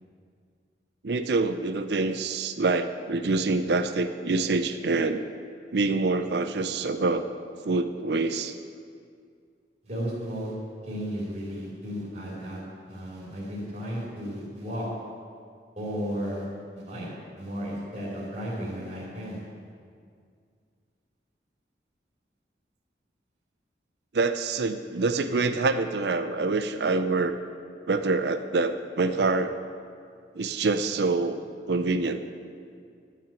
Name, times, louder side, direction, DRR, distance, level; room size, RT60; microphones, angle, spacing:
voice 1, 1.0-5.2 5.7-7.3 7.6-8.5 24.1-27.3 27.9-29.5 30.3-32.2, right 3 dB, 70° right, 9 dB, 0.5 m, -26 dB
voice 2, 9.8-10.5 10.8-12.6 12.9-14.9 15.8-16.5 16.8-17.1 17.4-19.4, equal, 40° right, -6 dB, 3.0 m, -34 dB
12.0 x 5.9 x 8.3 m, 2.2 s
head